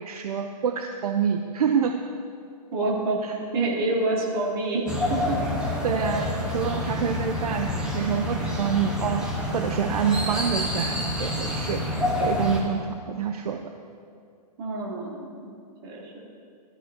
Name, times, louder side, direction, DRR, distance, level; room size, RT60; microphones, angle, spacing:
voice 1, 0.0-2.0 3.2-3.4 5.8-9.2 9.5-11.8 12.2-13.7, right 7 dB, 65° right, 5 dB, 0.9 m, -27 dB
voice 2, 2.7-3.2 3.5-5.2 14.6-15.4 15.8-16.1, right 2 dB, 35° right, -5 dB, 3.6 m, -27 dB
sound 1, 4.9-12.6, left 1 dB, 5° right, 1.3 m, -28 dB
22.0 x 13.5 x 2.9 m, 2.3 s
hypercardioid pair, 170°, 21 cm